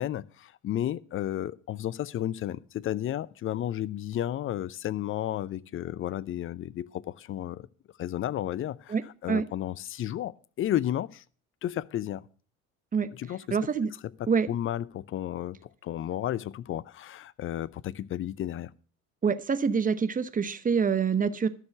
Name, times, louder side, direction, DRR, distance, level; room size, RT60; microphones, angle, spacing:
voice 1, 0.0-7.7 8.0-9.0 9.2-11.2 11.6-12.3 13.1-13.6 14.0-18.7, left 12 dB, 30° left, 0.6 m, -33 dB
voice 2, 13.5-13.9 14.3-14.5 19.2-21.5, right 6 dB, 20° right, 1.0 m, -26 dB
13.0 x 6.7 x 6.7 m
hypercardioid pair, 70°, 39 cm